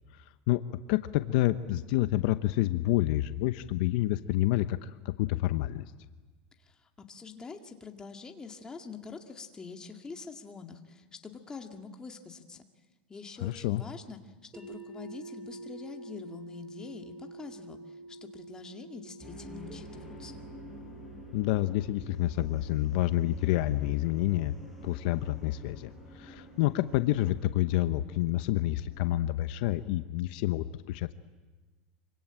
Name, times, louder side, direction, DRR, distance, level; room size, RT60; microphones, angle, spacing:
voice 1, 0.1-0.6 0.9-5.8 13.4-13.8 21.3-24.5 24.8-31.1, left 15 dB, 60° left, 11 dB, 0.9 m, -28 dB
voice 2, 6.6-12.6 13.1-14.2 14.5-20.4, left 5 dB, 15° left, 4 dB, 2.1 m, -45 dB
sound 1, 14.5-26.5, right 2 dB, 25° right, 7.2 m, -49 dB
sound 2, 19.2-29.1, equal, 5° right, 5.5 m, -48 dB
25.5 x 25.0 x 9.0 m, 1.3 s
supercardioid pair, 150°, 5 cm